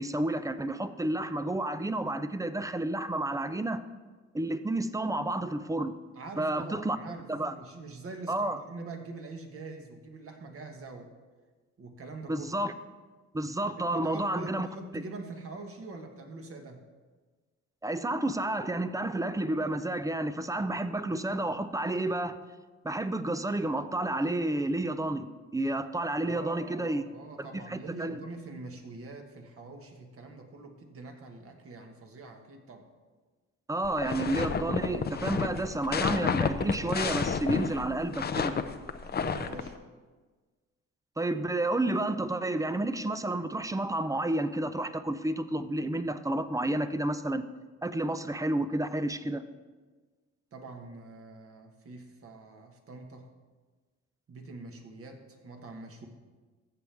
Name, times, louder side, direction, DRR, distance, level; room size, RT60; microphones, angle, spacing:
voice 1, 0.0-3.8 4.3-5.9 6.4-7.0 7.3-7.5 8.3-8.6 12.3-12.7 13.3-14.7 14.9-15.0 17.8-22.4 22.8-27.0 27.4-28.2 33.7-38.6 41.2-47.4 47.8-49.4, right 1 dB, 10° right, 11 dB, 0.5 m, -30 dB
voice 2, 6.1-11.1 11.8-12.5 13.8-16.8 26.2-32.9 39.0-39.8 50.5-53.3 54.3-56.1, right 3 dB, 50° right, 4 dB, 1.6 m, -44 dB
sound 1, 33.8-39.7, left 6 dB, 35° left, 0.6 m, -30 dB
14.5 x 7.6 x 3.5 m, 1.3 s
cardioid pair, 90°, 30 cm